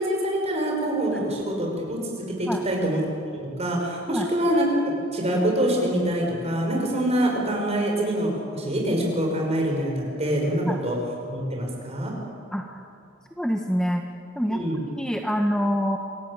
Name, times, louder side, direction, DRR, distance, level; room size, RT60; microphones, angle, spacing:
voice 1, 0.0-3.0 3.3-4.7 5.1-11.0 11.3-12.1 14.5-14.8, right 1 dB, 35° right, 0 dB, 6.0 m, -25 dB
voice 2, 13.4-14.0 14.4-14.6 15.0-16.0, equal, 5° left, 3 dB, 1.1 m, -25 dB
27.0 x 17.0 x 8.8 m, 2.5 s
head